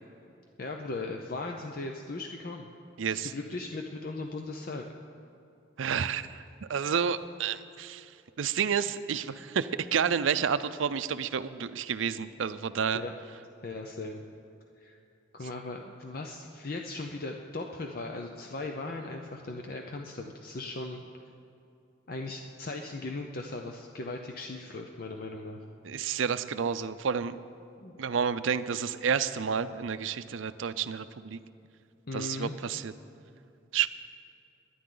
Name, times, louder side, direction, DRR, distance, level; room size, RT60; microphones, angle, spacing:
voice 1, 0.6-2.7 3.1-4.8 12.9-13.1 13.6-14.2 14.8-15.0 15.3-21.0 22.1-25.6 27.8-28.0 32.1-32.5, left 2 dB, 50° left, 3 dB, 0.6 m, -38 dB
voice 2, 3.0-3.3 5.8-6.4 6.7-8.1 8.4-13.0 25.8-27.4 28.0-31.4 32.1-32.9 33.7-33.9, right 7 dB, 80° right, 13 dB, 0.5 m, -30 dB
22.5 x 10.0 x 3.9 m, 2.7 s
head